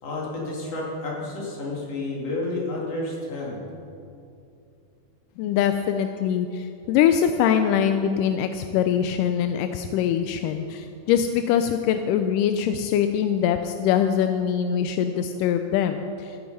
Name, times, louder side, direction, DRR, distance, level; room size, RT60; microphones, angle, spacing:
voice 1, 0.0-3.7, left 2 dB, 45° left, -3 dB, 3.2 m, -30 dB
voice 2, 5.4-16.4, left 9 dB, 80° left, 8 dB, 1.9 m, -23 dB
14.5 x 9.6 x 5.4 m, 2.6 s
omnidirectional pair, 4.2 m